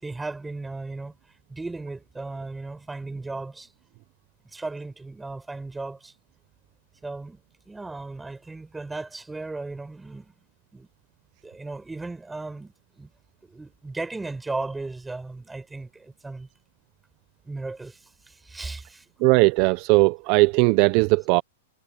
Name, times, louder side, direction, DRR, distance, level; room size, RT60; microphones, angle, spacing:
voice 1, 0.0-1.1 1.5-3.7 4.5-6.1 7.0-7.4 7.6-10.3 10.7-10.9 11.4-13.1 13.4-16.5 17.4-19.0, right 3 dB, 10° right, 6.7 m, -36 dB
voice 2, 19.2-21.4, right 26 dB, 45° right, 0.8 m, -18 dB
hypercardioid pair, 125°, 0 cm